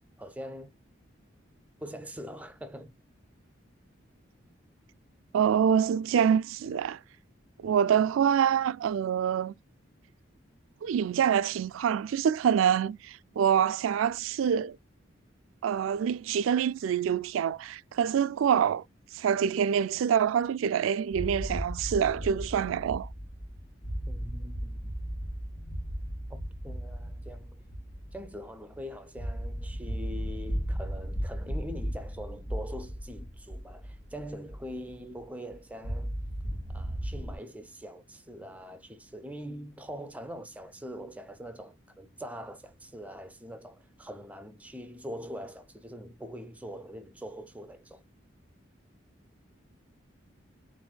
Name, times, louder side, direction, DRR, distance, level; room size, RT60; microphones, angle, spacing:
voice 1, 0.2-0.7 1.8-2.9 24.1-24.9 26.3-27.7 28.1-36.1 36.7-48.0, equal, 5° right, 0.5 m, -43 dB
voice 2, 5.3-7.0 7.6-9.5 10.8-14.8 15.6-18.8 19.1-23.1, right 8 dB, 85° right, 0.3 m, -26 dB
sound 1, 21.1-35.2 35.5-35.6 35.8-37.4, equal, 75° left, 1.4 m, -36 dB
7.7 x 2.6 x 2.2 m
head